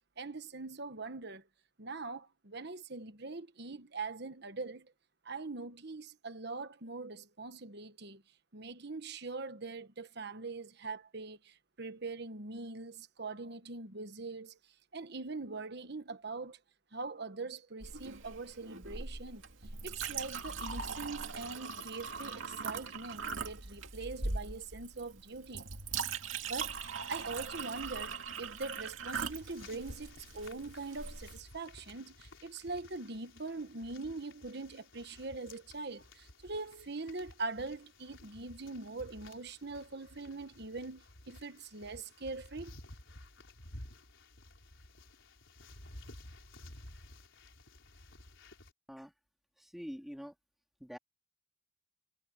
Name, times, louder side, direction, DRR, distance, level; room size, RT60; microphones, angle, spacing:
voice 1, 0.0-1.4 1.8-4.9 5.2-8.2 8.5-14.6 14.9-16.6 16.9-19.4 19.8-25.7 26.5-26.8 27.1-42.7, right 3 dB, 55° right, 1.3 m, -42 dB
Chink clink, 17.8-31.4, right 5 dB, 80° right, 2.4 m, -41 dB
sound 1, 29.1-48.7, left 1 dB, 75° left, 4.5 m, -54 dB
voice 2, 49.6-50.3 50.8-51.0, equal, ahead, 3.5 m, -45 dB
head